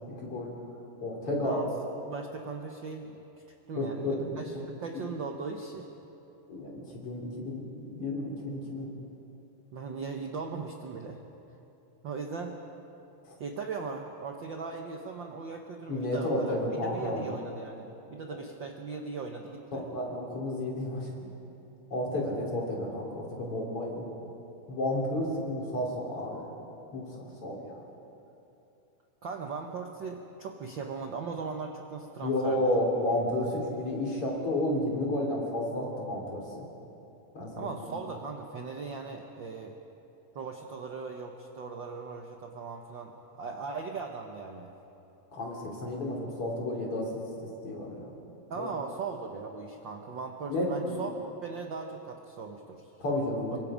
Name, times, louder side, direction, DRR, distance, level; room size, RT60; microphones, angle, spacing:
voice 1, 0.2-0.5 1.0-1.6 3.8-4.6 6.5-8.9 13.3-13.4 15.9-17.3 19.7-21.3 21.9-24.1 24.7-26.5 26.9-27.8 32.2-36.7 37.3-38.0 45.3-47.2 47.6-48.1 48.5-48.7 50.5-51.0 53.0-53.6, left 1 dB, 45° left, -2 dB, 4.3 m, -32 dB
voice 2, 1.2-1.7 2.1-3.2 3.7-5.9 9.7-11.2 12.0-12.6 13.4-16.5 16.8-19.8 29.2-32.6 33.1-33.2 37.5-39.8 40.3-44.7 48.5-51.1 51.4-53.2 53.5-53.6, right 4 dB, 80° right, 3 dB, 1.0 m, -39 dB
26.5 x 23.5 x 5.1 m, 2.9 s
omnidirectional pair, 3.7 m